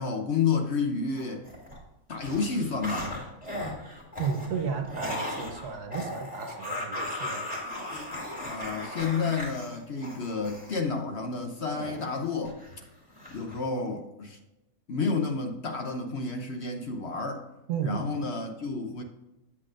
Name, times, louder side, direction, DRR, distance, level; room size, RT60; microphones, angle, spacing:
voice 1, 0.0-1.4 2.1-3.2 8.4-12.6 13.3-14.4 14.9-17.5 17.8-19.0, left 4 dB, 50° left, 0.9 m, -30 dB
sound 1, 1.2-1.8 2.1-10.8 11.7-12.8 13.2-13.6, left 1 dB, 25° left, 2.4 m, -37 dB
voice 2, 4.2-7.5 17.7-18.3, right 6 dB, 80° right, 1.5 m, -33 dB
8.2 x 8.2 x 2.5 m
omnidirectional pair, 1.7 m